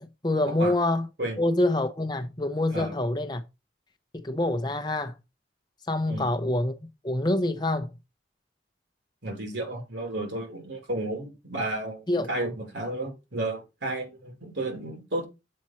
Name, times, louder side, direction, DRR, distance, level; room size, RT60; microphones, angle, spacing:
voice 1, 0.0-1.1 1.4-3.4 4.1-5.1 5.9-6.7 7.0-7.9 12.1-12.3, left 1 dB, 25° left, 0.7 m, -26 dB
voice 2, 9.2-15.2, right 2 dB, 75° right, 2.7 m, -32 dB
7.5 x 4.4 x 4.2 m
head